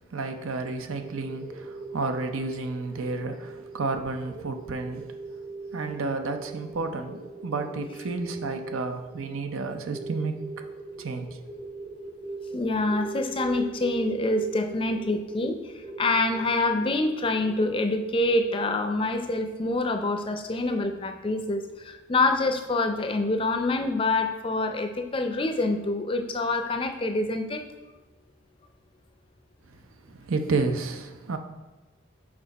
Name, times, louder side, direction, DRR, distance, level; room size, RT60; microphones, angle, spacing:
voice 1, 0.1-5.1 5.7-10.4 11.0-11.4 30.0-31.4, right 3 dB, 90° right, 0.6 m, -31 dB
sound 1, 1.0-17.1, right 3 dB, 20° right, 0.6 m, -40 dB
voice 2, 12.5-27.6, left 2 dB, 25° left, 0.4 m, -26 dB
6.1 x 5.2 x 4.0 m
head